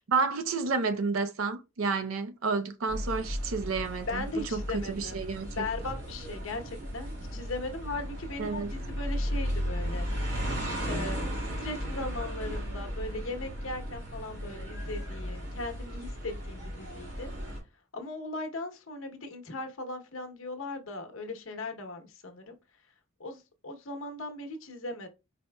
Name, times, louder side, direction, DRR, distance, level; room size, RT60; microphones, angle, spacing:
voice 1, 0.0-4.2 4.5-4.6 4.9-5.6 8.4-8.7, right 4 dB, 75° right, 0.6 m, -30 dB
sound 1, 2.9-17.6, equal, 60° right, 2.4 m, -35 dB
voice 2, 4.1-5.2 5.6-10.1 10.9-17.3 17.9-22.6 23.2-25.1, left 2 dB, 70° left, 0.9 m, -38 dB
4.3 x 4.1 x 2.2 m
head